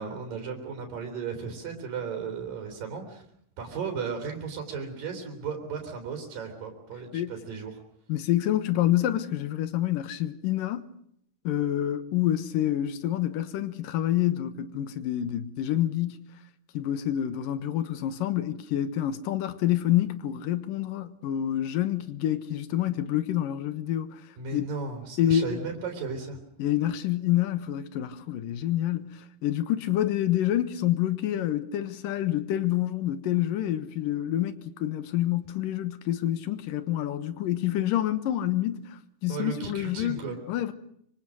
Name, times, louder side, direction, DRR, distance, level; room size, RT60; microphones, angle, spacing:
voice 1, 0.0-3.2 3.6-7.8 24.4-26.4 39.3-40.4, right 5 dB, 90° right, 5.3 m, -35 dB
voice 2, 8.1-10.9 11.4-16.3 16.7-24.2 24.5-24.7 25.2-25.7 26.6-40.7, left 12 dB, 85° left, 2.9 m, -27 dB
25.5 x 25.0 x 6.4 m
omnidirectional pair, 3.8 m